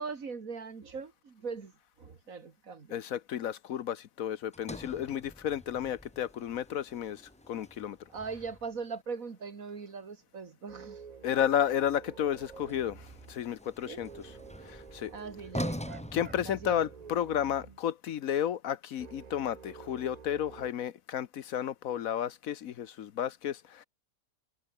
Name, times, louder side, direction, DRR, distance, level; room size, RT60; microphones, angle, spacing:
voice 1, 0.0-1.7 2.0-3.0 8.1-11.0 13.9-14.0 15.1-15.9 16.3-16.8, right 5 dB, 60° right, 2.5 m, -40 dB
voice 2, 2.9-7.2 7.5-8.0 11.2-14.1 14.6-15.1 16.1-23.8, left 10 dB, 70° left, 1.2 m, -32 dB
Sliding door, 4.5-8.8 12.3-17.2, left 1 dB, 5° left, 1.2 m, -44 dB
sound 1, 10.7-13.4 14.0-17.8 19.0-20.7, right 6 dB, 35° right, 0.7 m, -49 dB
omnidirectional pair, 1.6 m